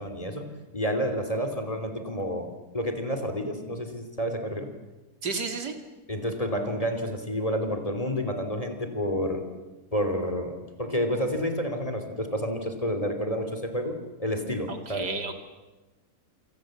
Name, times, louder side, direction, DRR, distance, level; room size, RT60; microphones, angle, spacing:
voice 1, 0.0-4.7 6.1-9.4 9.9-15.1, equal, 20° left, 6 dB, 3.1 m, -30 dB
voice 2, 5.2-5.7 14.7-15.3, right 4 dB, 80° right, 6 dB, 3.2 m, -32 dB
27.5 x 26.5 x 7.9 m, 1.1 s
omnidirectional pair, 1.8 m